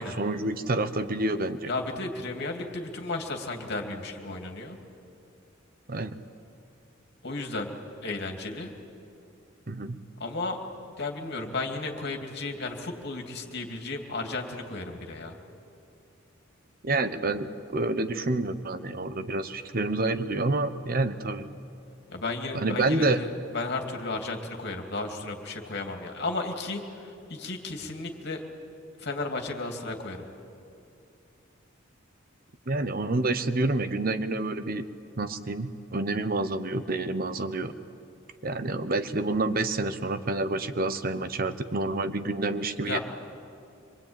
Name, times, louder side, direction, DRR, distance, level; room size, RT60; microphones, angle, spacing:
voice 1, 0.0-1.7 5.9-6.1 9.7-10.0 16.8-21.5 22.5-23.2 32.7-34.8 35.2-37.7 38.4-43.0, right 2 dB, 45° right, 11 dB, 1.0 m, -28 dB
voice 2, 1.7-4.8 7.2-7.7 8.0-8.7 10.2-10.6 11.0-15.4 22.1-28.4 29.0-30.2 42.8-43.0, left 3 dB, 55° left, 3 dB, 2.7 m, -34 dB
25.5 x 23.0 x 9.0 m, 2.6 s
head